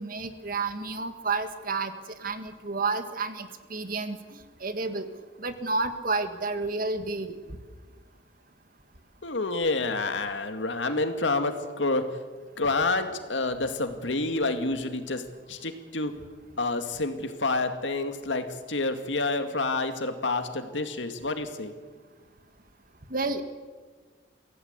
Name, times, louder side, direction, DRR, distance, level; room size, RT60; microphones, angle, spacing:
voice 1, 0.0-1.9 2.2-4.2 4.6-5.1 5.4-7.4 23.1-23.4, right 3 dB, 50° right, 9 dB, 1.8 m, -30 dB
voice 2, 9.2-12.1 12.6-16.1 16.6-21.7, left 3 dB, 90° left, 7 dB, 2.2 m, -28 dB
24.5 x 16.5 x 8.2 m, 1.5 s
head